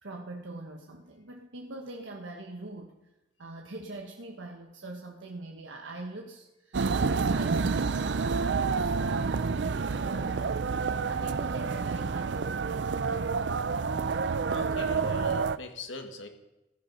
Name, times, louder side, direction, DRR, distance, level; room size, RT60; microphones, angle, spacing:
voice 1, 0.0-2.9 3.4-10.6 11.0-13.3, right 2 dB, 85° right, 2 dB, 1.2 m, -43 dB
sound 1, 6.7-15.6, right 4 dB, 65° right, 0.5 m, -28 dB
voice 2, 14.5-16.3, left 3 dB, 90° left, 5 dB, 1.8 m, -41 dB
15.5 x 12.0 x 5.4 m, 0.97 s
head